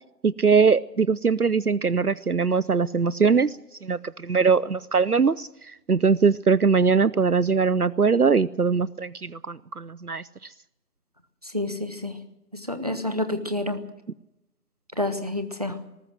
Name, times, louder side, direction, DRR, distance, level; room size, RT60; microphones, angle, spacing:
voice 1, 0.2-10.2, right 5 dB, 65° right, 20 dB, 0.7 m, -21 dB
voice 2, 11.5-12.1 12.5-13.8 15.0-15.7, left 1 dB, 25° right, 10 dB, 1.2 m, -28 dB
19.5 x 18.5 x 7.8 m, 0.90 s
figure-of-eight pair, 165°, 49 cm